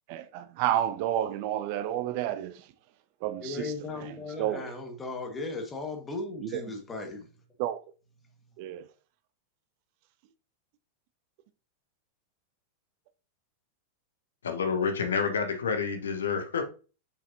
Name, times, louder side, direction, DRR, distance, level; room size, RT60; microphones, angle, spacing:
voice 1, 0.1-2.7 3.2-3.7 4.0-4.7 6.4-6.6 7.6-7.8 8.6-8.9, right 11 dB, 45° right, 0.5 m, -31 dB
voice 2, 3.4-7.3, left 3 dB, 20° left, 1.6 m, -37 dB
voice 3, 14.4-16.6, left 5 dB, 65° left, 1.1 m, -28 dB
6.6 x 5.7 x 2.7 m
figure-of-eight pair, 90°, 0 cm